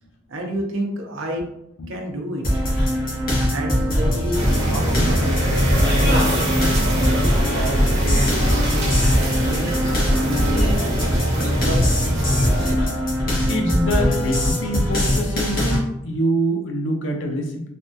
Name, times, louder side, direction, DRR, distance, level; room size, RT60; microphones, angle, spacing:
voice 1, 0.3-1.4 1.9-2.6 3.5-5.5 5.7-6.7 7.5-10.7 11.6-12.1, equal, 85° right, 1 dB, 0.6 m, -30 dB
sound 1, 2.4-15.8, equal, 45° left, 1.2 m, -21 dB
sound 2, 4.3-12.7, equal, 60° right, 1.0 m, -22 dB
voice 2, 13.5-17.7, equal, 70° left, 2 dB, 0.6 m, -24 dB
3.4 x 2.3 x 2.7 m, 0.79 s
head